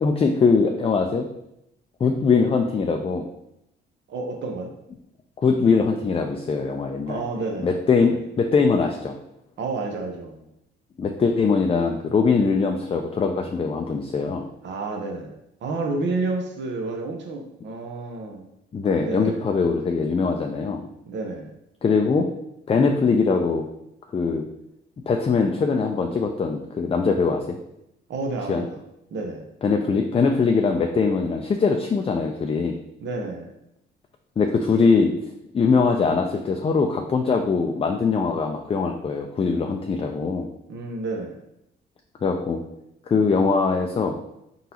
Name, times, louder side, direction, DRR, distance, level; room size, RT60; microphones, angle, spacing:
voice 1, 0.0-1.3 2.0-3.3 5.4-7.2 7.6-9.2 11.0-14.5 18.7-20.8 21.8-22.3 22.7-23.7 24.1-24.5 25.1-27.6 28.5-28.6 29.6-32.8 34.4-35.1 35.5-40.5 42.2-42.6 43.1-44.2, left 4 dB, 30° left, 4 dB, 0.4 m, -22 dB
voice 2, 4.1-4.7 7.1-8.2 9.6-10.4 14.6-15.3 15.6-18.4 19.0-19.4 21.1-21.5 28.1-28.8 29.1-29.4 33.0-33.5 40.7-41.4, right 3 dB, 65° right, 2 dB, 0.8 m, -30 dB
3.9 x 3.8 x 2.9 m, 0.81 s
cardioid pair, 90°, 20 cm